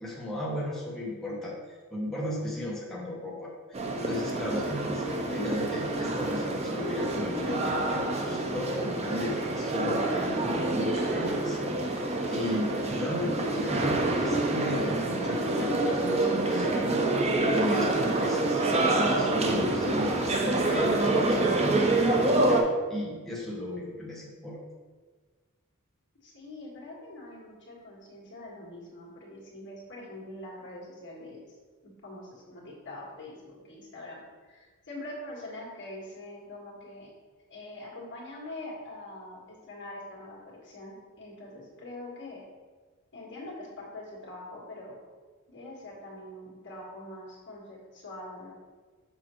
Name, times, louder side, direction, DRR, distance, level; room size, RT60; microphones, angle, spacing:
voice 1, 0.0-3.8 4.0-17.0 17.5-22.6 22.9-24.6, left 1 dB, ahead, -6 dB, 1.0 m, -35 dB
sound 1, 3.7-22.6, right 2 dB, 30° right, 0.6 m, -27 dB
voice 2, 26.2-31.6 31.8-37.1 37.5-42.4 43.1-45.0 45.5-48.5, left 1 dB, 55° left, -3 dB, 1.7 m, -44 dB
6.2 x 5.8 x 3.0 m, 1.4 s
head